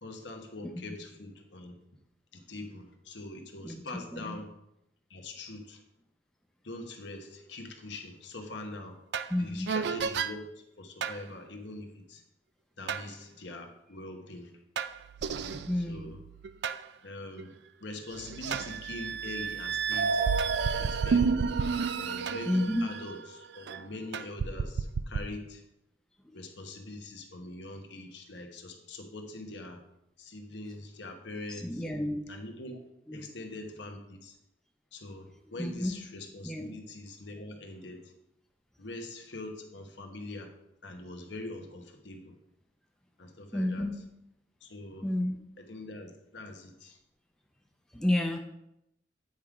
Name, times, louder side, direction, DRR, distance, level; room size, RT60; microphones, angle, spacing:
voice 1, 0.0-1.7 2.3-4.5 5.1-5.8 6.6-9.0 9.4-12.2 12.8-14.5 15.3-16.2 17.0-20.3 20.8-21.3 22.0-25.6 26.3-29.8 30.2-31.8 32.3-32.8 33.1-34.4 34.9-38.1 38.8-40.5 40.8-42.4 43.2-43.9 44.6-45.0 45.7-47.0, left 2 dB, 70° left, 4 dB, 1.1 m, -43 dB
sound 1, 9.1-9.3 9.7-10.3 11.0-11.2 12.9-13.1 14.8-16.8 17.4-17.5 18.1-23.8 24.1-25.2, right 5 dB, 65° right, 0.4 m, -31 dB
voice 2, 9.3-9.7 15.7-16.1 22.5-22.8 26.2-26.4 31.5-32.2 33.1-33.2 35.6-36.0 36.4-36.7 43.5-44.0 45.0-45.4 47.9-48.4, left 1 dB, 5° left, 1 dB, 0.6 m, -30 dB
8.8 x 3.6 x 4.8 m, 0.81 s
head